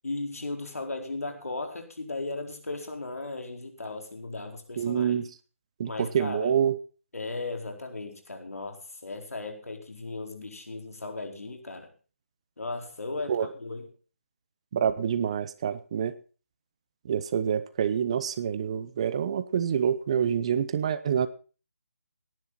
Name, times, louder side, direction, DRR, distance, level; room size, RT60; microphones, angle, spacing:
voice 1, 0.0-5.1 5.8-6.5 7.1-11.9 12.6-13.9, left 3 dB, 80° left, 3 dB, 4.4 m, -36 dB
voice 2, 4.8-5.3 5.8-6.8 13.3-13.5 14.7-16.1 17.0-21.3, right 8 dB, 25° right, 14 dB, 0.7 m, -27 dB
17.5 x 10.5 x 4.1 m, 0.36 s
figure-of-eight pair, 165°, 8 cm